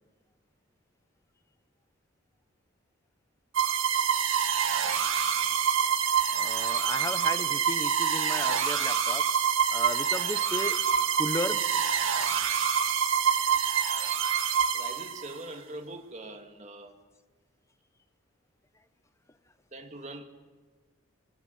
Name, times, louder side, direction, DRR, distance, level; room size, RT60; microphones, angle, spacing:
sound 1, 3.5-15.4, right 7 dB, 70° right, 2.0 m, -26 dB
voice 1, 6.3-9.2 9.7-11.6, left 1 dB, 15° left, 1.1 m, -35 dB
voice 2, 14.7-17.0 19.7-20.2, right 2 dB, 35° right, 2.4 m, -42 dB
24.0 x 20.0 x 9.5 m
head